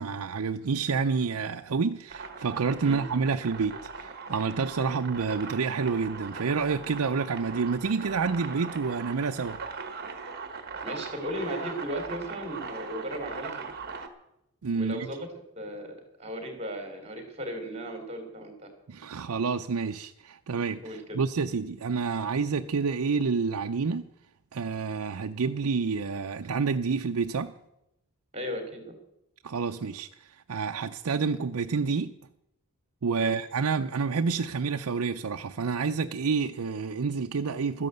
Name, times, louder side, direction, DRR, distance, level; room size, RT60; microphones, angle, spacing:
voice 1, 0.0-9.6 14.6-15.1 18.9-24.1 24.5-27.5 29.4-32.1 33.0-37.9, right 5 dB, 80° right, 0.6 m, -29 dB
sound 1, 2.1-14.1, right 4 dB, 45° right, 1.4 m, -40 dB
voice 2, 10.8-13.7 14.7-15.3 15.5-18.7 20.8-21.2 28.3-28.9 33.2-33.4, equal, 30° right, 3.1 m, -36 dB
13.0 x 10.5 x 7.9 m
head